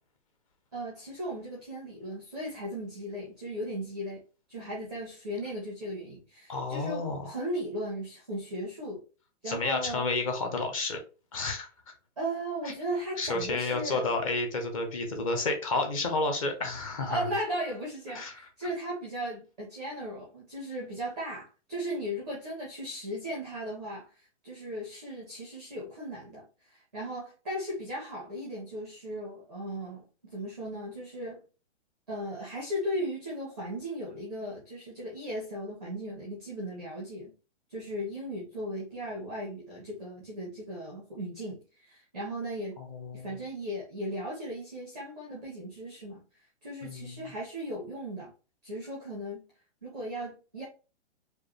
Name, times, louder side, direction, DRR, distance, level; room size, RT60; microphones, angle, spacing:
voice 1, 0.7-4.2 4.5-9.0 9.4-10.1 12.2-14.0 17.0-24.1 24.4-31.4 32.1-37.3 37.7-42.8 43.1-46.2 46.6-48.3 48.6-49.4 49.8-50.6, equal, ahead, 0.5 m, -37 dB
voice 2, 6.5-7.3 9.4-11.0 11.3-11.7 12.6-12.7 13.2-17.2 18.1-18.3 42.8-43.4 46.8-47.3, left 3 dB, 30° left, 0.8 m, -31 dB
4.8 x 2.4 x 3.2 m
hypercardioid pair, 170°, 36 cm